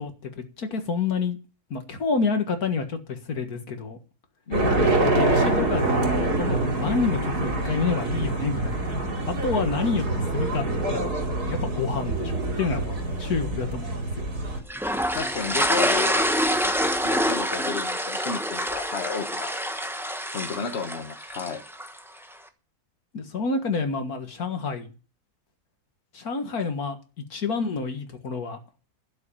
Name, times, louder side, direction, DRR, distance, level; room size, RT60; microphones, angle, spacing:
voice 1, 0.0-1.4 1.7-4.0 5.0-8.9 9.2-10.1 10.3-10.6 10.9-11.1 11.5-14.3 23.1-24.9 26.1-28.6, left 4 dB, 70° left, 2.2 m, -28 dB
voice 2, 4.5-4.9 15.1-19.5 20.3-21.6, left 6 dB, 45° left, 1.5 m, -32 dB
sound 1, 4.5-14.6, right 2 dB, 90° right, 3.2 m, -25 dB
sound 2, 14.7-22.0, equal, ahead, 0.9 m, -26 dB
12.0 x 6.4 x 8.7 m
omnidirectional pair, 1.6 m